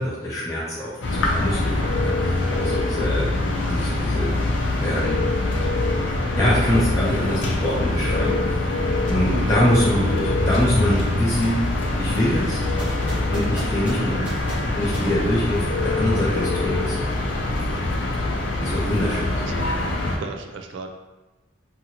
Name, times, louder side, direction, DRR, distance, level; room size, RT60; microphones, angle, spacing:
voice 1, 0.0-3.3 3.7-4.3 4.8-5.2 6.3-11.7 12.0-12.6 13.3-14.3 14.8-17.0 18.6-19.4, equal, 15° left, -9 dB, 0.5 m, -24 dB
sound 1, 1.0-20.2, left 2 dB, 80° left, 0.5 m, -24 dB
voice 2, 9.3-9.6 14.0-14.3 19.4-19.7 20.2-20.9, right 4 dB, 75° right, 5 dB, 0.4 m, -33 dB
sound 2, 12.8-16.0, right 1 dB, 10° right, 0.8 m, -37 dB
2.8 x 2.5 x 2.8 m, 1.1 s
head